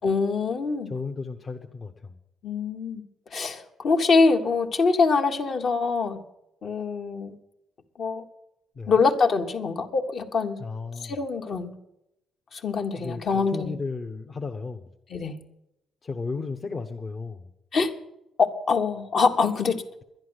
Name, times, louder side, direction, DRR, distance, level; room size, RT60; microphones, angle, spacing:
voice 1, 0.0-0.9 2.4-3.0 3.3-6.2 6.6-7.3 8.0-8.2 8.9-10.6 11.0-11.7 12.5-13.7 15.1-15.4 17.7-17.9 18.4-19.8, left 4 dB, 55° left, 5 dB, 1.3 m, -24 dB
voice 2, 0.9-2.2 8.8-8.9 10.6-11.2 13.0-14.9 16.0-17.5, left 4 dB, 40° left, 3 dB, 0.8 m, -34 dB
11.0 x 10.5 x 8.0 m, 0.87 s
cardioid pair, 90°, 0 cm